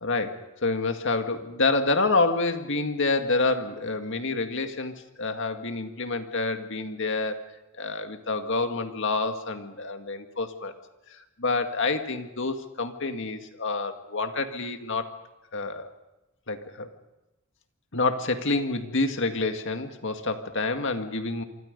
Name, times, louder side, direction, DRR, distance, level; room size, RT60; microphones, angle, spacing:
voice 1, 0.0-10.7 11.1-15.1 15.5-15.9 16.5-16.9 17.9-21.4, left 3 dB, 65° left, 7 dB, 1.9 m, -28 dB
27.5 x 24.5 x 5.3 m, 0.99 s
head